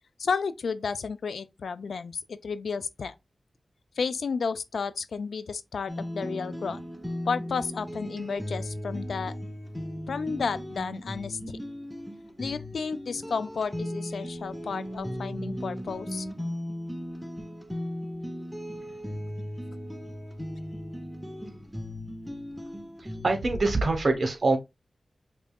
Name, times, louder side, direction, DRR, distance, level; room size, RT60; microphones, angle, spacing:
voice 1, 0.2-3.1 4.0-6.8 7.3-9.3 10.1-11.6 12.4-16.3, left 5 dB, 85° left, 0.3 m, -32 dB
sound 1, 5.9-23.4, equal, ahead, 0.7 m, -37 dB
voice 2, 23.0-24.6, right 3 dB, 65° right, 0.9 m, -25 dB
5.2 x 2.3 x 2.3 m
cardioid pair, 50°, 0 cm